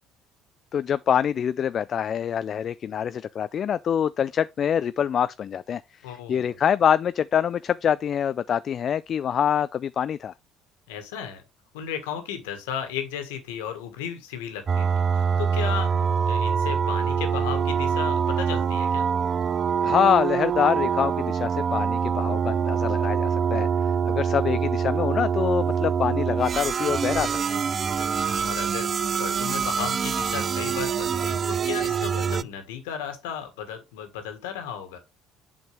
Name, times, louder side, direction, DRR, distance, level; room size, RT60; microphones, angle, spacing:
voice 1, 0.7-10.3 19.8-23.7 24.1-27.3, left 8 dB, 50° left, 0.3 m, -25 dB
voice 2, 6.0-6.6 10.9-11.4 11.7-15.9 16.3-19.0 28.0-35.0, left 8 dB, 80° left, 1.6 m, -35 dB
sound 1, 14.7-32.4, right 7 dB, 40° right, 0.3 m, -25 dB
7.9 x 5.1 x 3.3 m
hypercardioid pair, 60°, 0 cm